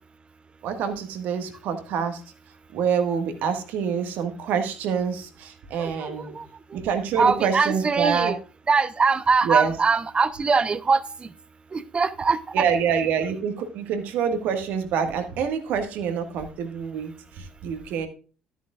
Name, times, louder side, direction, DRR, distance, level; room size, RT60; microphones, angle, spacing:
voice 1, 0.6-2.2 2.7-6.4 6.7-8.3 9.4-9.7 12.5-18.1, right 7 dB, 65° right, 7 dB, 1.6 m, -26 dB
voice 2, 5.8-6.5 7.2-8.4 8.7-11.0 11.7-12.7, right 4 dB, 30° right, 15 dB, 0.8 m, -22 dB
13.0 x 8.2 x 2.4 m, 0.36 s
hypercardioid pair, 55°, 3 cm